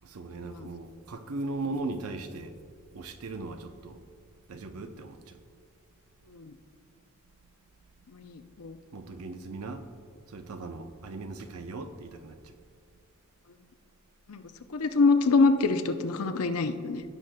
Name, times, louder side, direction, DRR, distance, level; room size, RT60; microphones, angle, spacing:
voice 1, 0.0-2.6 2.9-4.0 4.5-5.4 8.9-9.9 10.3-12.5, right 3 dB, 70° right, 0.6 m, -38 dB
voice 2, 8.1-8.8 14.3-14.4 14.7-17.0, left 3 dB, 70° left, 0.6 m, -25 dB
16.0 x 6.4 x 2.2 m
head